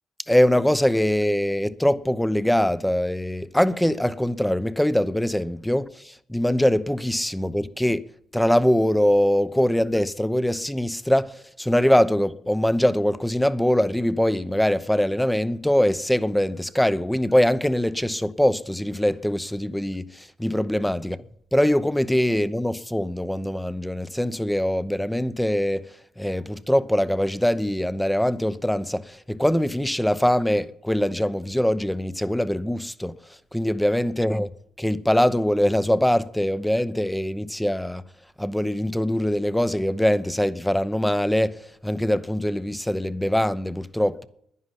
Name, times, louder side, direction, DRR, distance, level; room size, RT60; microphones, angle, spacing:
voice 1, 0.3-8.0 8.3-21.2 21.5-34.5 34.8-38.0 38.4-44.3, equal, 5° left, 0.7 m, -23 dB
11.0 x 10.5 x 9.9 m
cardioid pair, 90°, 0 cm